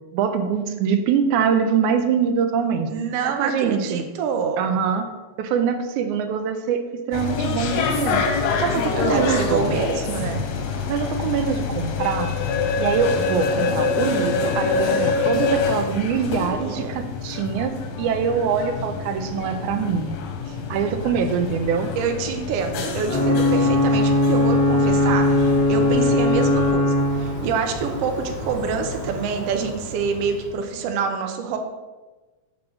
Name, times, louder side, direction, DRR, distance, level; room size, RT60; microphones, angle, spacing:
voice 1, 0.1-2.9 3.2-4.0 4.6-5.1 5.4-6.8 7.1-8.3 8.6-9.8 10.9-12.4 12.8-20.1 20.7-21.9, right 7 dB, 90° right, 8 dB, 2.0 m, -24 dB
voice 2, 2.9-4.6 8.9-10.4 16.6-17.0 20.5-20.6 21.9-31.6, right 5 dB, 75° right, 5 dB, 1.5 m, -26 dB
sound 1, 7.1-26.7, left 5 dB, 90° left, 2.2 m, -26 dB
Ocean / Boat Water vehicle / Alarm, 23.0-30.6, left 1 dB, 10° left, 1.2 m, -21 dB
6.0 x 3.7 x 6.1 m, 1.2 s
omnidirectional pair, 3.3 m